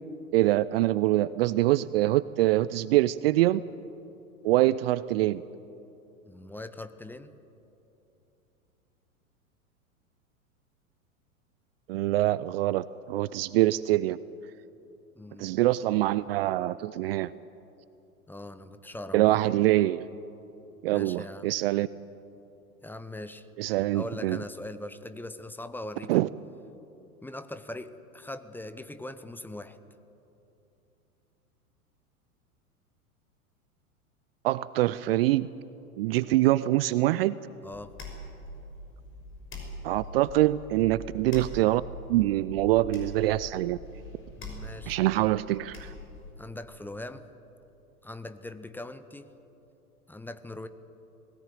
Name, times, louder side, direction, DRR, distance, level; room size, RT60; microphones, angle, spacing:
voice 1, 0.3-3.6 4.4-5.4 11.9-14.2 15.4-17.3 19.1-20.0 20.8-21.9 23.6-24.4 26.1-26.3 34.4-35.5 36.0-37.4 39.8-41.8 42.1-43.8 44.9-45.9, right 16 dB, 45° right, 18 dB, 0.5 m, -24 dB
voice 2, 6.2-7.3 15.1-15.6 18.3-19.4 20.9-21.5 22.8-23.5 23.9-26.3 27.2-29.8 37.6-37.9 44.3-45.0 46.4-47.3 48.0-49.3 50.1-50.7, left 1 dB, 5° left, 11 dB, 0.7 m, -41 dB
sound 1, 37.7-46.3, left 2 dB, 25° left, 5.8 m, -43 dB
21.5 x 17.5 x 9.4 m, 2.9 s
figure-of-eight pair, 100°, 44 cm